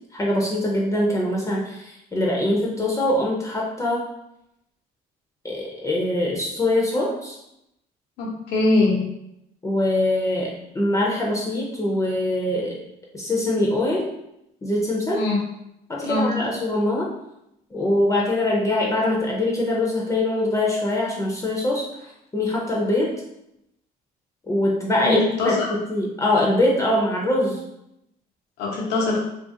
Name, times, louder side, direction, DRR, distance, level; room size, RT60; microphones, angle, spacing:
voice 1, 0.1-4.0 5.4-7.4 9.6-12.8 13.1-14.1 14.6-15.2 15.9-17.1 17.7-23.1 24.5-27.6, left 1 dB, 20° left, -3 dB, 0.5 m, -23 dB
voice 2, 8.2-9.0 15.1-15.4 16.0-16.3 25.0-25.7 28.6-29.2, left 2 dB, 85° left, -3 dB, 0.8 m, -22 dB
2.7 x 2.5 x 2.6 m, 0.83 s
cardioid pair, 110°, 17 cm